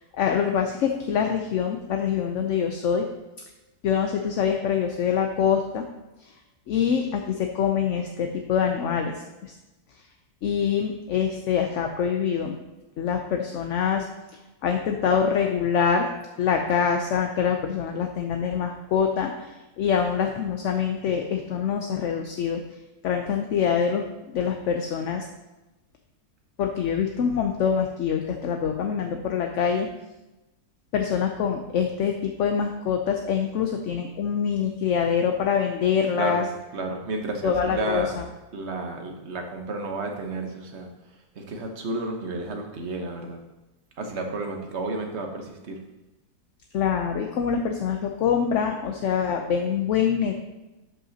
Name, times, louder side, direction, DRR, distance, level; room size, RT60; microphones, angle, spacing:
voice 1, 0.2-3.1 3.8-5.8 6.7-9.1 9.4-9.5 10.4-12.6 13.0-14.0 14.6-16.1 16.4-19.3 19.8-22.6 23.0-25.2 26.6-29.9 30.9-36.4 37.4-38.0 46.7-50.3, left 7 dB, 65° left, 4 dB, 0.8 m, -25 dB
voice 2, 36.7-38.2 38.5-40.9 41.3-43.4 44.0-45.8, right 2 dB, 50° right, 3 dB, 1.2 m, -31 dB
12.0 x 5.5 x 2.8 m, 1.0 s
omnidirectional pair, 1.7 m